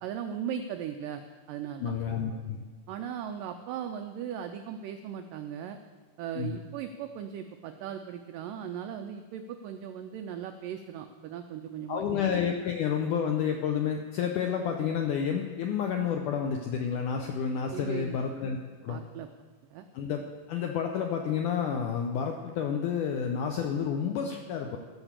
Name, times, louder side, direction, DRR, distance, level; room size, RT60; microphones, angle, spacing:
voice 1, 0.0-1.9 2.9-5.8 6.2-12.2 17.7-18.2 18.9-19.3 19.7-19.9, right 9 dB, 90° right, 7 dB, 1.9 m, -38 dB
voice 2, 1.8-2.7 6.4-6.6 11.9-18.6 18.8-19.0 19.9-20.2 20.5-24.8, left 7 dB, 80° left, 3 dB, 1.8 m, -30 dB
15.0 x 6.2 x 7.4 m, 1.4 s
omnidirectional pair, 4.6 m